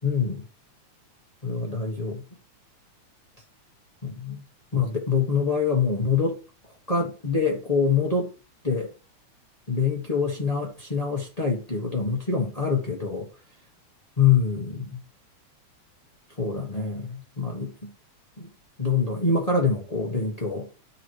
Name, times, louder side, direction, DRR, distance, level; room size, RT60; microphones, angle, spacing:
voice 1, 0.0-0.4 1.4-2.2 4.0-4.4 4.7-6.4 6.9-8.3 8.6-8.9 9.7-13.3 14.2-15.0 16.4-17.9 18.4-18.5 18.8-20.7, left 5 dB, 30° left, 0.7 m, -25 dB
12.5 x 4.2 x 3.1 m
omnidirectional pair, 3.3 m